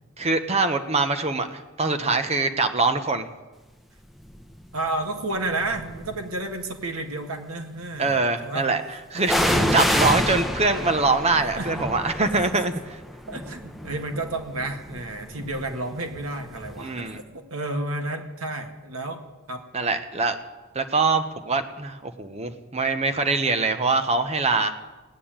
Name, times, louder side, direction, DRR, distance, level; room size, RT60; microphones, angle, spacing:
voice 1, 0.2-3.3 8.0-8.8 9.1-13.0 16.8-17.2 19.7-20.4 20.7-24.7, right 3 dB, 30° right, 8 dB, 1.0 m, -23 dB
sound 1, 4.3-4.7 5.4-6.3 9.2-16.9 17.2-17.3, equal, ahead, 0.8 m, -28 dB
voice 2, 4.7-8.7 9.1-9.9 11.6-11.8 13.3-19.2 19.5-19.6, right 2 dB, 90° right, 4 dB, 2.0 m, -31 dB
17.5 x 9.3 x 8.9 m, 1.2 s
head